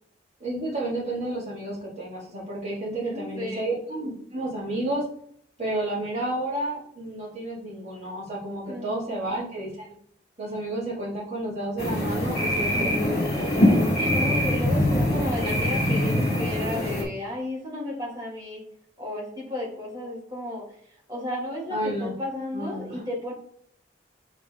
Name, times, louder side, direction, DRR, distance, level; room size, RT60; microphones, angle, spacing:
voice 1, 0.4-5.0 5.6-9.7 10.4-13.2 21.7-22.1 22.5-23.0, right 1 dB, 35° right, -5 dB, 2.2 m, -31 dB
voice 2, 3.0-3.7 8.6-9.1 12.7-13.0 13.9-18.6 19.0-20.6 21.1-23.3, left 1 dB, 20° right, -5 dB, 2.2 m, -33 dB
sound 1, 11.8-17.0, left 1 dB, 55° left, 2.1 m, -23 dB
7.0 x 4.0 x 3.7 m, 0.65 s
head